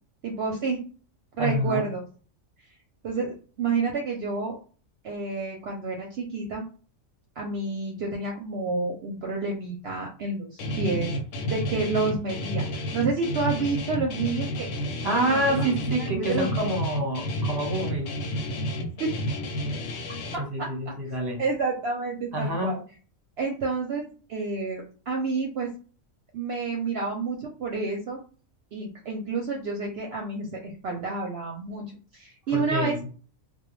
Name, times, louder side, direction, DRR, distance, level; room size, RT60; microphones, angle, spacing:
voice 1, 0.2-0.8 1.4-2.0 3.0-4.5 5.0-6.6 7.4-11.1 11.5-14.7 15.3-16.7 19.0-19.1 20.3-20.4 21.4-22.8 23.4-24.0 24.3-25.7 26.3-28.2 28.7-32.9, right 4 dB, 65° right, 0 dB, 0.7 m, -29 dB
voice 2, 1.4-1.9 15.0-18.1 20.4-21.4 22.3-22.8 32.5-33.0, equal, 20° right, 0 dB, 0.7 m, -27 dB
Guitar, 10.6-20.4, equal, 70° left, 0.9 m, -31 dB
2.2 x 2.2 x 3.0 m, 0.38 s
omnidirectional pair, 1.3 m